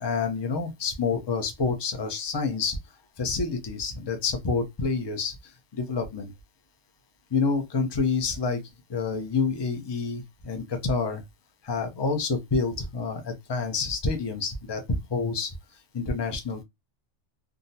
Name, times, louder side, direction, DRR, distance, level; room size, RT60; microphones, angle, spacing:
voice 1, 0.0-2.8 3.2-6.3 7.3-8.6 8.9-11.2 11.6-15.5 15.9-16.6, left 4 dB, 30° left, 0.5 m, -28 dB
3.5 x 2.1 x 2.7 m
omnidirectional pair, 1.2 m